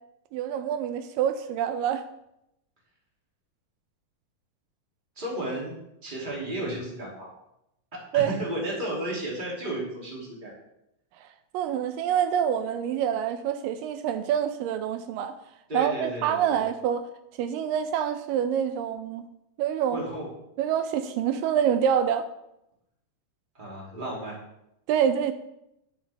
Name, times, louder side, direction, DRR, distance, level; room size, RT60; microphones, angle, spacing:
voice 1, 0.3-2.0 8.1-8.3 11.2-11.3 11.5-15.3 15.7-17.1 17.4-19.3 19.6-20.0 20.6-22.3 24.9-25.3, right 9 dB, 85° right, 2.3 m, -26 dB
voice 2, 5.2-5.7 6.0-7.3 7.9-10.5 15.7-16.6 19.9-20.3 23.5-24.4, right 1 dB, 15° right, 2.2 m, -33 dB
11.5 x 7.5 x 3.4 m
omnidirectional pair, 3.9 m